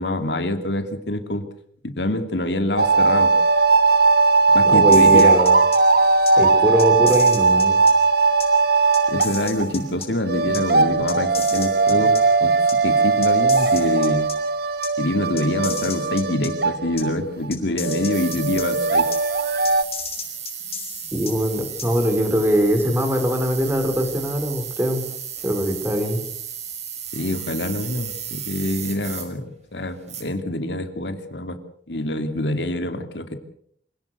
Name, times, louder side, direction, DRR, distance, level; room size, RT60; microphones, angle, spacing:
voice 1, 0.0-1.5 1.8-3.3 4.5-5.3 9.1-12.5 12.8-14.3 15.0-19.1 27.1-29.4 29.7-31.6 31.9-33.4, left 1 dB, 80° left, 8 dB, 2.7 m, -25 dB
sound 1, 2.8-17.1 17.4-17.5 17.8-19.8, right 4 dB, 60° right, 1.2 m, -18 dB
voice 2, 4.6-5.6 6.4-7.8 11.9-12.1 21.1-25.0 25.4-26.2, equal, 15° right, 6 dB, 4.6 m, -22 dB
sound 2, 4.9-5.8 6.3-6.4 6.8-7.9 8.4-8.5 8.9-10.1 10.5-10.6 11.1-12.2 12.7-12.8 13.2-14.4 14.8-14.9 15.4-16.5 17.0-17.1 17.5-18.6 19.1-19.2 19.6-21.3 21.8-21.9, left 8 dB, 35° left, 5.3 m, -33 dB
sound 3, 18.1-29.3 29.8-30.2, right 8 dB, 40° right, 4.6 m, -34 dB
26.5 x 18.0 x 6.7 m, 0.65 s
head